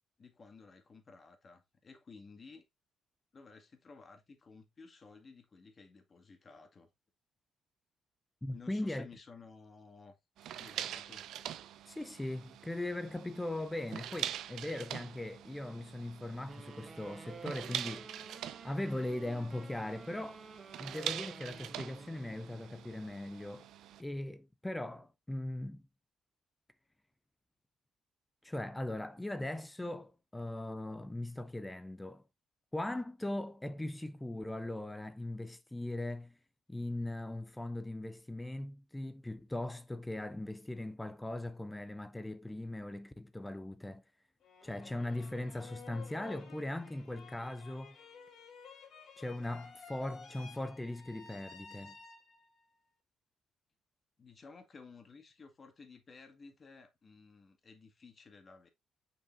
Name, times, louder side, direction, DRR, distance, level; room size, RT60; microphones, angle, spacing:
voice 1, 0.2-2.7 3.3-6.9 8.5-11.3 54.2-58.7, left 4 dB, 40° left, 1.9 m, -55 dB
voice 2, 8.4-9.1 11.9-18.1 18.6-20.4 20.8-23.7 24.0-25.8 28.4-32.2 32.7-36.4 36.7-44.0 44.6-48.0 49.2-52.0, left 1 dB, 10° left, 0.5 m, -39 dB
sound 1, 10.4-24.0, right 11 dB, 80° right, 0.6 m, -44 dB
sound 2, 16.5-22.9, right 4 dB, 35° right, 1.1 m, -52 dB
sound 3, 44.4-52.6, left 5 dB, 65° left, 2.1 m, -54 dB
6.9 x 5.5 x 2.5 m
cardioid pair, 90°, 0 cm